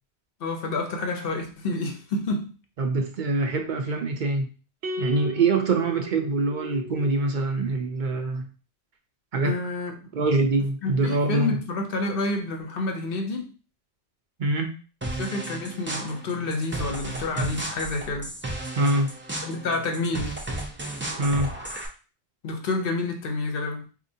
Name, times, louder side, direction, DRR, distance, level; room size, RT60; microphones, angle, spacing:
voice 1, 0.4-2.5 9.4-10.0 10.8-13.5 15.2-18.3 19.4-20.4 22.4-23.9, left 2 dB, 60° left, 0.9 m, -29 dB
voice 2, 2.8-4.5 5.0-8.5 9.3-9.6 10.1-11.6 14.4-14.7 18.8-19.1 21.2-21.5, right 3 dB, 55° right, 0.7 m, -24 dB
sound 1, 4.8-7.3, right 1 dB, 80° right, 1.0 m, -35 dB
sound 2, 15.0-21.9, right 2 dB, 15° right, 0.5 m, -34 dB
4.2 x 2.7 x 2.7 m
omnidirectional pair, 1.1 m